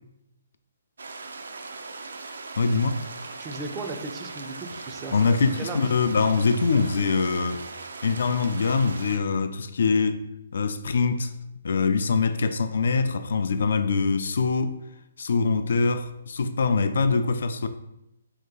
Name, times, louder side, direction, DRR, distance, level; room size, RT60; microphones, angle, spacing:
sound 1, 1.0-9.2, right 3 dB, 90° right, 0.4 m, -39 dB
voice 1, 2.6-3.0 5.1-7.6 8.0-10.2 10.5-11.3 11.6-14.7 15.2-17.7, left 4 dB, 65° left, 0.3 m, -23 dB
voice 2, 3.4-5.8, right 3 dB, 15° right, 0.3 m, -36 dB
3.1 x 2.8 x 3.7 m
hypercardioid pair, 170°, 0 cm